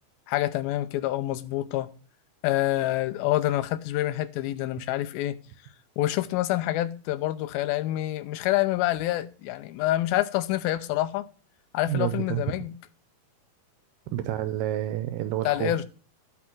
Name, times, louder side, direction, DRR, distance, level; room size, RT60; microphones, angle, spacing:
voice 1, 0.3-1.9 2.4-5.4 6.0-11.3 11.7-12.7 15.5-15.9, left 15 dB, 80° left, 2.5 m, -27 dB
voice 2, 11.9-12.4 14.1-15.7, right 12 dB, 90° right, 2.6 m, -29 dB
10.0 x 6.3 x 6.0 m
omnidirectional pair, 4.4 m